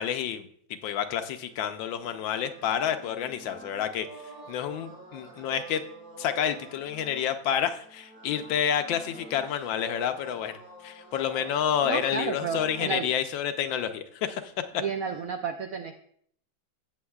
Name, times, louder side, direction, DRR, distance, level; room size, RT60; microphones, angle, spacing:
voice 1, 0.0-4.1 4.5-5.8 6.2-10.5 10.8-14.5, left 9 dB, 75° left, 8 dB, 1.4 m, -29 dB
sound 1, 1.3-13.1 14.2-15.2, right 3 dB, 55° right, 2.7 m, -48 dB
voice 2, 11.8-13.1 14.7-16.0, right 6 dB, 75° right, 6 dB, 0.8 m, -32 dB
17.0 x 7.2 x 2.3 m, 0.64 s
omnidirectional pair, 2.1 m